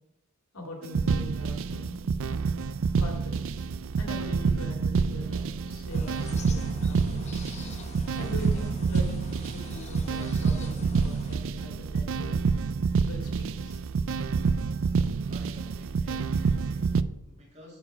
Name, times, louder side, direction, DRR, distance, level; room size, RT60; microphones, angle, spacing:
voice 1, 0.5-2.0 3.0-3.6 4.0-7.2 8.1-12.5 13.0-13.8, left 1 dB, 80° left, 1 dB, 2.5 m, -42 dB
sound 1, 0.8-17.0, right 5 dB, 65° right, 0.4 m, -28 dB
sound 2, 5.9-11.4, left 2 dB, 30° left, 0.8 m, -43 dB
voice 2, 15.3-17.8, equal, 30° right, -2 dB, 2.3 m, -52 dB
9.6 x 4.9 x 5.3 m, 0.88 s
head